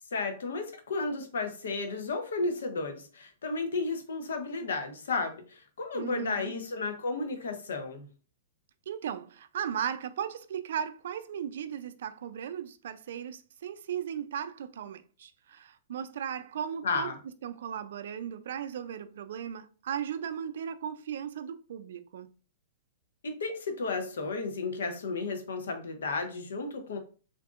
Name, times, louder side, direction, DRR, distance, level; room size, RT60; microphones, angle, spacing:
voice 1, 0.1-8.1 16.8-17.2 23.2-27.0, left 3 dB, 85° left, 0.7 m, -33 dB
voice 2, 5.9-6.6 8.9-17.1 17.4-22.3, right 8 dB, 70° right, 0.3 m, -36 dB
3.5 x 2.6 x 2.4 m
hypercardioid pair, 135°, 0 cm